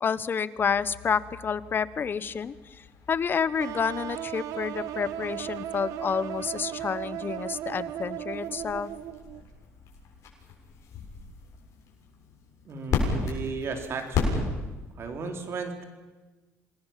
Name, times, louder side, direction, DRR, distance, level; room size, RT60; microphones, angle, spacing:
voice 1, 0.0-8.9, left 6 dB, 35° left, 16 dB, 1.0 m, -29 dB
sound 1, 0.6-14.9, left 4 dB, 60° left, 7.6 m, -36 dB
sound 2, 3.6-9.4, right 12 dB, 75° right, 1.4 m, -36 dB
voice 2, 12.7-14.4 15.0-15.8, right 4 dB, 45° right, 4 dB, 4.2 m, -35 dB
28.5 x 20.0 x 7.5 m, 1.2 s
cardioid pair, 100°, 6 cm